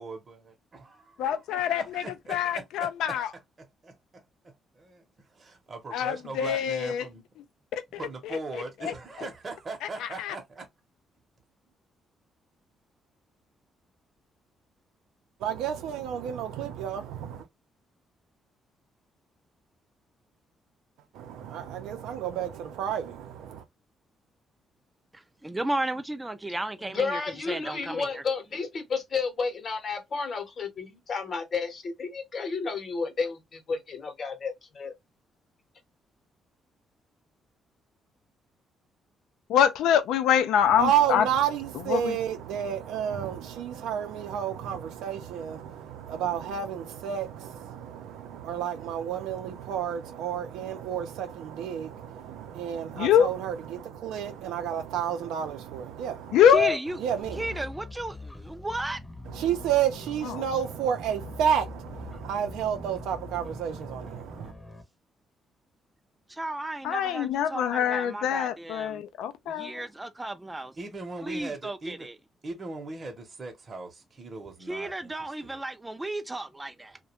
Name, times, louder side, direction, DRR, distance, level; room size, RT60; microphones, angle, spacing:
voice 1, 0.0-2.9 3.6-4.2 4.7-7.2 7.9-10.7 70.8-72.1 72.4-75.6, right 3 dB, 35° right, 0.8 m, -40 dB
voice 2, 1.2-2.0 2.3-3.3 5.9-7.1 7.7-7.8 8.8-8.9 10.0-10.3 39.5-41.3 41.7-42.2 52.9-53.3 56.3-56.8 60.2-60.4 66.8-69.8, left 9 dB, 85° left, 0.4 m, -24 dB
voice 3, 15.4-17.4 21.1-23.6 40.8-56.4 57.0-57.6 59.3-64.5, right 9 dB, 90° right, 0.5 m, -30 dB
voice 4, 25.1-27.2 27.5-28.2 56.5-57.0 57.3-59.0 66.3-69.0 69.5-70.7 71.2-72.1 74.7-77.0, right 2 dB, 15° right, 0.4 m, -34 dB
voice 5, 26.9-34.9, left 4 dB, 50° left, 0.8 m, -32 dB
sound 1, 57.2-64.8, left 2 dB, 15° left, 0.7 m, -43 dB
2.4 x 2.2 x 2.8 m
cardioid pair, 90°, 0 cm